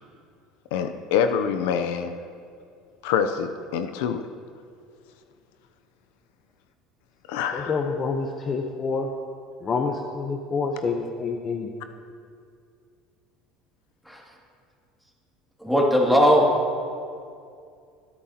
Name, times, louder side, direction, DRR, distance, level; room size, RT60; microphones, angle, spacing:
voice 1, 0.7-2.1 3.0-4.3 7.3-7.8, left 7 dB, 80° left, 8 dB, 0.6 m, -25 dB
voice 2, 7.5-9.1 9.6-11.7, left 4 dB, 30° left, 3 dB, 0.8 m, -27 dB
voice 3, 15.6-16.6, equal, ahead, -3 dB, 2.4 m, -18 dB
23.0 x 8.8 x 2.9 m, 2.3 s
supercardioid pair, 115°, 0 cm